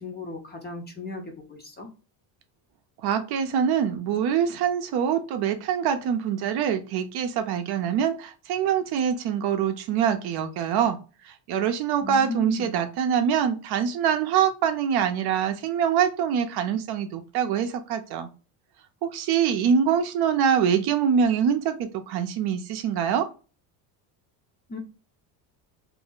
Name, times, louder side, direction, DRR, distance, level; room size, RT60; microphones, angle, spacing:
voice 1, 0.0-1.9 12.0-12.8 24.7-24.8, left 2 dB, 20° left, 3 dB, 0.6 m, -36 dB
voice 2, 3.0-11.0 11.2-18.3 19.0-23.3, right 8 dB, 55° right, 7 dB, 0.6 m, -24 dB
2.6 x 2.0 x 3.7 m, 0.34 s
cardioid pair, 120°, 49 cm